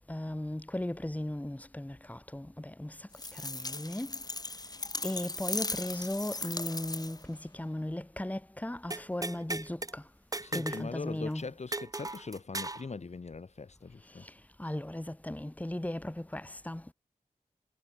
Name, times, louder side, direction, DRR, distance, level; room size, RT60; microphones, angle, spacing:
voice 1, 0.1-4.2 5.0-10.0 10.5-11.5 14.2-14.3 14.6-16.9, left 1 dB, 10° left, 2.1 m, -37 dB
sound 1, 3.1-7.3, left 2 dB, 25° left, 1.5 m, -38 dB
sound 2, 8.9-9.9 10.3-10.9 11.2-11.3 11.7-12.9, right 2 dB, 25° right, 1.7 m, -37 dB
voice 2, 10.4-14.3, left 4 dB, 50° left, 1.9 m, -41 dB
wide cardioid pair, 85°, 14 cm